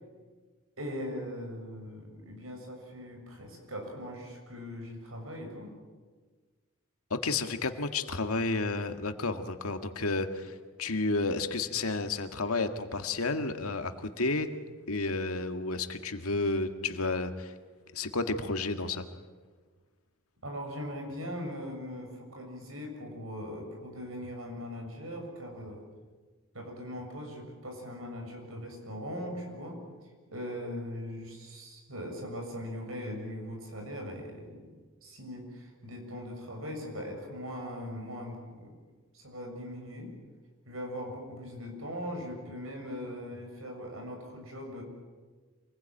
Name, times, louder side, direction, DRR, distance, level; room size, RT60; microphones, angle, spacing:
voice 1, 0.8-5.7 20.4-25.8 26.5-29.8 30.3-34.7 35.0-38.8 39.1-40.1 40.7-44.8, equal, 70° right, 2 dB, 7.1 m, -40 dB
voice 2, 7.1-14.5 14.9-17.5 17.9-19.0, left 3 dB, 90° left, 7 dB, 1.8 m, -31 dB
27.0 x 20.5 x 9.0 m, 1.4 s
head